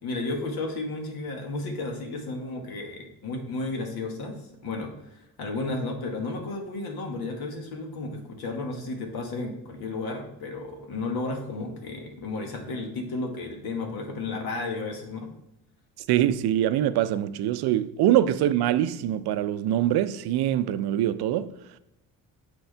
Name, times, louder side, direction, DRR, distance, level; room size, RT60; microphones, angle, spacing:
voice 1, 0.0-15.3, left 2 dB, 70° left, 1.5 m, -33 dB
voice 2, 16.1-21.5, right 12 dB, 75° right, 0.5 m, -24 dB
7.0 x 4.4 x 3.3 m
cardioid pair, 75°, 38 cm